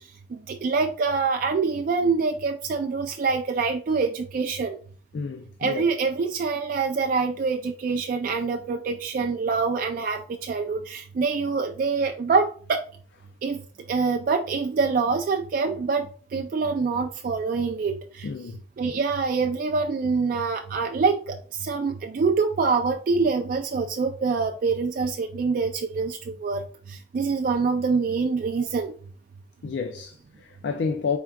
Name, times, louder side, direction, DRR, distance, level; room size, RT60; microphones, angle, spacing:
voice 1, 0.5-4.8 5.6-12.8 13.4-13.6 13.9-16.1 16.3-18.3 18.8-21.3 21.6-26.6 27.1-28.9, right 4 dB, 50° right, 0.3 m, -25 dB
voice 2, 5.1-5.8 18.2-18.6 29.6-31.2, left 5 dB, 80° left, 0.4 m, -30 dB
4.5 x 3.6 x 2.2 m
head